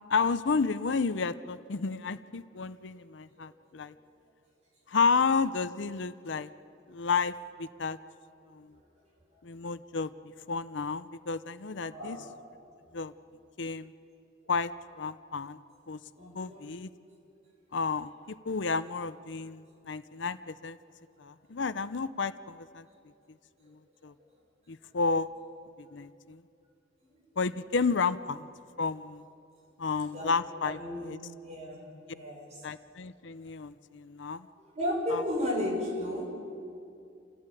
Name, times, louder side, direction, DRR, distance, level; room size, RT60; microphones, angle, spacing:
voice 1, 0.1-3.9 4.9-6.5 6.9-8.0 8.5-8.7 9.4-10.1 10.5-12.2 12.9-13.1 13.6-13.9 14.5-14.7 15.0-15.6 15.9-16.0 16.3-16.9 17.7-20.8 21.2-22.9 23.7-24.1 24.7-25.3 25.8-26.4 27.4-28.5 28.8-29.2 29.8-31.2 32.6-34.5 35.1-35.2, left 4 dB, 70° left, 13 dB, 0.6 m, -31 dB
voice 2, 11.9-12.2 16.2-16.6 27.0-27.2 30.0-31.1 31.4-31.8 32.1-32.7 34.4-34.5 34.7-36.3, left 1 dB, 35° right, -2 dB, 6.4 m, -34 dB
28.5 x 15.5 x 9.1 m, 2.6 s
head